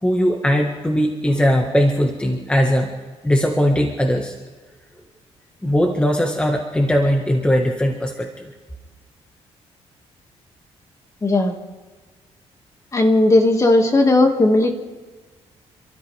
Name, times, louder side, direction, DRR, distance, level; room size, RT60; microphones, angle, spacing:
voice 1, 0.0-2.9 3.2-4.3 5.6-8.5, equal, 10° left, 1 dB, 1.6 m, -19 dB
voice 2, 11.2-11.5 12.9-14.7, left 2 dB, 25° left, 4 dB, 2.1 m, -16 dB
29.5 x 13.0 x 3.5 m, 1.3 s
cardioid pair, 100°, 11 cm